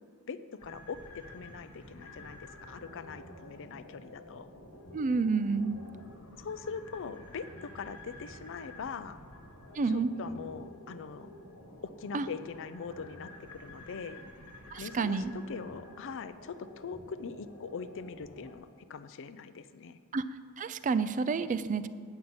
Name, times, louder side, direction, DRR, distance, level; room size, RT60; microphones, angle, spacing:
voice 1, 0.3-4.5 6.4-9.2 9.9-11.3 11.8-14.2 14.8-20.0, left 5 dB, 60° left, 13 dB, 0.5 m, -42 dB
sound 1, 0.6-18.6, left 1 dB, 90° left, 1.6 m, -50 dB
voice 2, 4.9-5.8 9.7-10.1 12.1-12.3 14.7-15.3 20.1-20.2 20.6-21.9, right 4 dB, 35° right, 13 dB, 0.4 m, -29 dB
8.8 x 5.6 x 7.9 m, 2.1 s
head